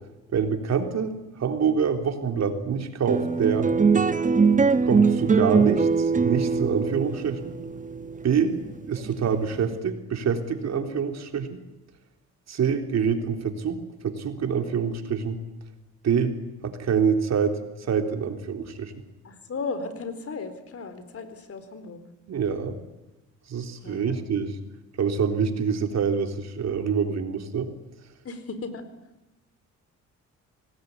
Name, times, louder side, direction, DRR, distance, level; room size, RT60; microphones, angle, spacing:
voice 1, 0.3-3.7 4.8-7.5 8.2-8.5 8.9-11.6 12.5-15.4 16.0-17.6 17.9-18.9 22.3-22.8 23.5-24.6 25.0-27.7, right 6 dB, 60° right, 6 dB, 3.7 m, -26 dB
sound 1, 3.1-9.7, right 5 dB, 25° right, 1.2 m, -22 dB
voice 2, 8.3-8.6 19.2-22.0 23.8-24.2 28.2-28.8, left 4 dB, 50° left, 11 dB, 4.2 m, -36 dB
25.5 x 19.5 x 9.8 m, 1.0 s
cardioid pair, 90°, 30 cm